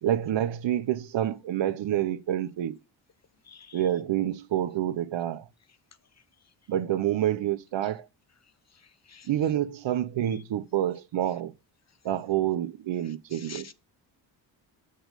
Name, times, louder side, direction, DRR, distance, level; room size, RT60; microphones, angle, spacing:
voice 1, 0.0-2.8 3.7-5.4 6.7-8.0 9.3-11.5 12.0-13.7, right 11 dB, 65° right, 0.9 m, -28 dB
voice 2, 3.5-3.8 9.1-9.3 13.3-13.7, left 6 dB, 35° left, 0.7 m, -46 dB
6.5 x 6.2 x 5.3 m
cardioid pair, 60°, 48 cm